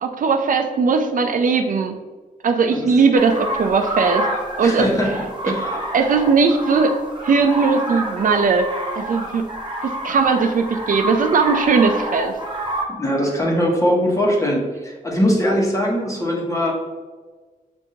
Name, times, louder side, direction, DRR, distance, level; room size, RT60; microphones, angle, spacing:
voice 1, 0.0-2.0 2.4-4.3 4.6-4.9 5.4-5.5 5.9-7.0 7.2-8.7 9.0-9.5 9.8-12.4, right 5 dB, 65° right, 5 dB, 0.4 m, -18 dB
sound 1, 3.1-12.8, right 1 dB, 30° right, 0.8 m, -28 dB
voice 2, 4.6-5.8 12.9-16.8, equal, 20° left, -2 dB, 1.0 m, -21 dB
6.4 x 2.6 x 2.7 m, 1.3 s
wide cardioid pair, 95°, 15 cm